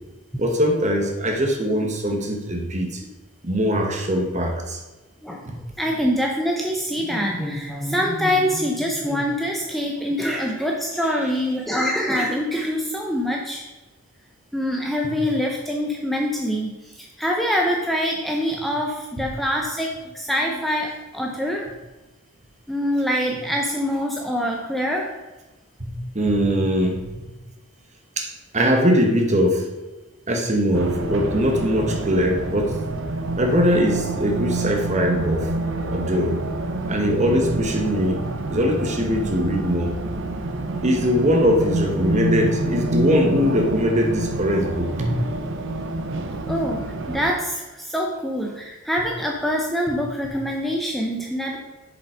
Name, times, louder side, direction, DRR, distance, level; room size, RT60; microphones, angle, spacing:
voice 1, 0.4-3.0 3.4-4.8 5.4-5.5 15.0-15.1 25.8-27.0 28.2-29.6 30.3-32.8 33.4-35.5 35.9-36.4 36.9-38.2 38.5-39.9 40.8-45.2, equal, 30° right, 3 dB, 1.1 m, -21 dB
voice 2, 5.8-13.6 14.5-21.7 22.7-25.1 46.5-51.6, equal, ahead, -1 dB, 0.5 m, -25 dB
Race car auto racing, 30.7-47.3, right 2 dB, 60° right, 0.6 m, -27 dB
6.8 x 5.2 x 5.0 m, 1.1 s
head